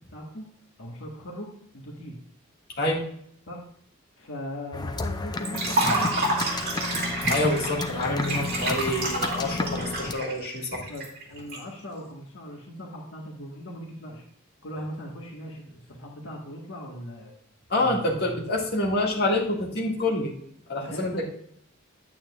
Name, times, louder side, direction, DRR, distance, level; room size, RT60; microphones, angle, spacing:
voice 1, 0.1-0.5 0.8-2.2 3.5-3.7 4.2-6.1 10.9-14.2 14.6-17.3 17.7-18.4 20.8-21.3, equal, 70° left, -1 dB, 1.5 m, -39 dB
sound 1, 4.7-10.1, left 3 dB, 20° left, 0.5 m, -32 dB
Liquid, 5.5-11.6, right 2 dB, 45° right, 2.5 m, -28 dB
voice 2, 7.3-10.8 17.7-20.3 20.7-21.3, left 1 dB, 50° left, -2 dB, 1.9 m, -27 dB
8.9 x 8.7 x 2.4 m, 0.66 s
head